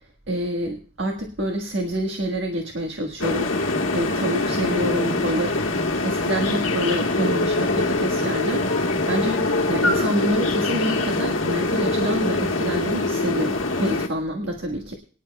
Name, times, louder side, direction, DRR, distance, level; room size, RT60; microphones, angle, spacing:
voice 1, 0.3-8.7 9.1-14.9, equal, 70° right, 3 dB, 1.5 m, -27 dB
sound 1, 3.2-14.1, left 2 dB, 80° left, 1.3 m, -23 dB
23.0 x 10.0 x 2.3 m, 0.42 s
head